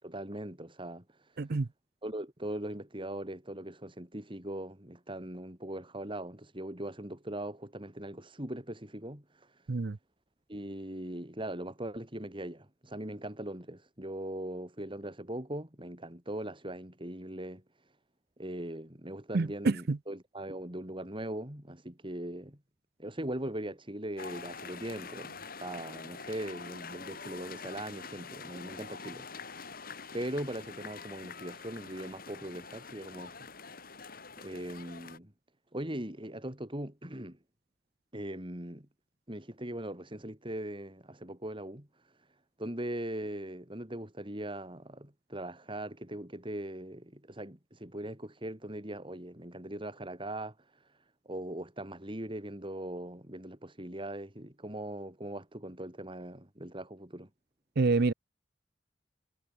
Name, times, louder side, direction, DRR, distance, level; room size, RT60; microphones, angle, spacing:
voice 1, 0.0-1.4 2.0-9.7 10.5-17.6 18.4-22.6 23.0-29.7 30.1-33.5 34.4-35.3 35.7-37.4 38.1-38.9 39.3-42.1 42.6-50.9 51.2-57.3, right 1 dB, 30° right, 4.8 m, -40 dB
voice 2, 1.4-1.7 9.7-10.0 19.3-20.0 57.8-58.1, right 3 dB, 60° right, 0.6 m, -27 dB
sound 1, 24.2-35.2, left 5 dB, 55° left, 5.0 m, -45 dB
head